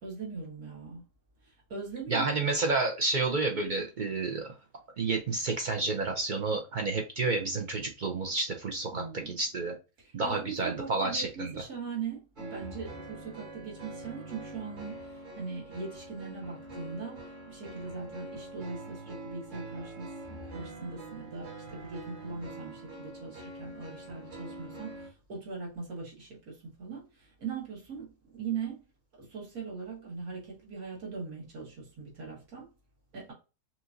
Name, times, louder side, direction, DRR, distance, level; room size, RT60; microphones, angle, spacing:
voice 1, 0.0-1.0 1.4-2.4 8.9-9.4 10.0-28.8 29.2-32.7 33.1-33.3, right 5 dB, 70° right, 2.0 m, -40 dB
voice 2, 2.1-4.5 5.0-9.7 10.1-11.5, right 3 dB, 55° right, 0.5 m, -30 dB
sound 1, 12.4-25.1, right 2 dB, 35° right, 1.1 m, -44 dB
5.7 x 2.6 x 2.6 m
omnidirectional pair, 1.6 m